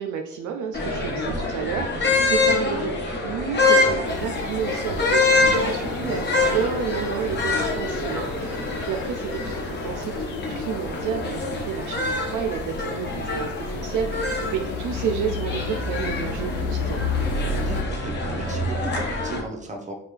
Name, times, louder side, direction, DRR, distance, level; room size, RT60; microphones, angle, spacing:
voice 1, 0.0-17.0, right 7 dB, 65° right, 4 dB, 0.5 m, -31 dB
sound 1, 0.7-19.4, left 2 dB, 30° left, 1.1 m, -25 dB
sound 2, 4.0-17.8, left 6 dB, 75° left, 0.7 m, -33 dB
voice 2, 17.5-19.9, right 2 dB, 20° right, 2 dB, 1.0 m, -37 dB
4.4 x 2.4 x 3.2 m, 0.80 s
supercardioid pair, 65°, 33 cm